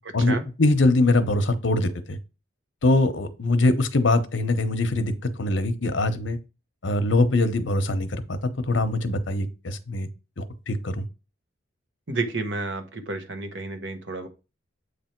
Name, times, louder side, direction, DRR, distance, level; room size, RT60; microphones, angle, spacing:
voice 1, 0.1-2.2 2.8-6.4 6.8-8.4 8.7-10.1 10.4-11.1, left 2 dB, 65° left, 0.9 m, -23 dB
voice 2, 12.1-14.3, right 3 dB, 65° right, 1.2 m, -30 dB
8.1 x 3.4 x 4.5 m
head